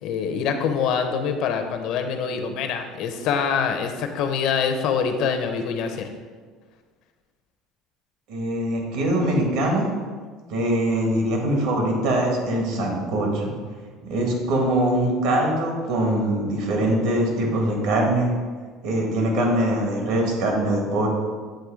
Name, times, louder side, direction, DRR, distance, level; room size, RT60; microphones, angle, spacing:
voice 1, 0.0-6.1, left 6 dB, 60° left, 6 dB, 0.7 m, -25 dB
voice 2, 8.3-9.9 10.5-13.5 14.0-18.3 18.8-21.1, right 1 dB, 75° right, 0 dB, 1.6 m, -22 dB
7.7 x 3.1 x 4.9 m, 1.5 s
cardioid pair, 145°, 0 cm